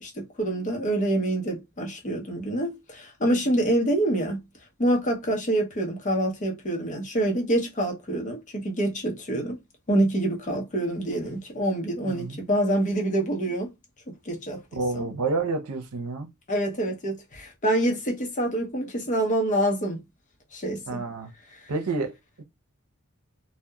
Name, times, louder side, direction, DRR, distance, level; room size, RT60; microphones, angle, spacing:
voice 1, 0.0-4.4 4.8-9.6 9.9-13.7 14.1-14.6 14.9-15.1 16.5-20.0 20.5-21.0 21.5-21.6, right 1 dB, 35° left, 0.7 m, -26 dB
voice 2, 12.0-12.4 14.7-16.3 20.9-21.3 21.7-22.4, right 3 dB, 80° right, 0.6 m, -29 dB
2.8 x 2.1 x 2.2 m
head